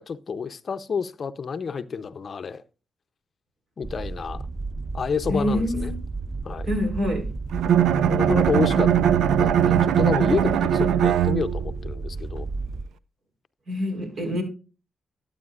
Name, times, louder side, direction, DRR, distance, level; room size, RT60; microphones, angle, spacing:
voice 1, 0.0-2.6 3.8-4.5 4.9-5.9 6.4-6.7 8.1-8.9 9.4-12.5, left 6 dB, 50° left, 0.6 m, -29 dB
sound 1, 3.8-12.8, right 3 dB, 25° right, 0.4 m, -33 dB
voice 2, 5.3-6.0 6.7-7.3 13.7-14.4, left 1 dB, 60° right, 3.9 m, -26 dB
Bowed string instrument, 7.5-11.8, right 9 dB, 85° right, 0.5 m, -20 dB
12.0 x 8.4 x 2.4 m
cardioid pair, 80°, 0 cm